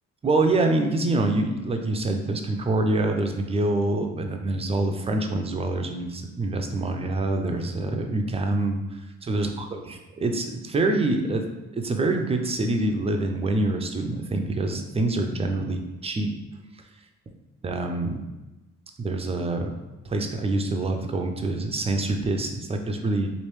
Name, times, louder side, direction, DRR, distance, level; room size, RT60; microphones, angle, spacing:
voice 1, 0.2-11.4 11.7-16.3 17.6-18.2 19.0-19.7 20.0-23.3, right 2 dB, 20° right, 4 dB, 0.4 m, -26 dB
3.1 x 2.6 x 3.1 m, 1.1 s
cardioid pair, 90°, 30 cm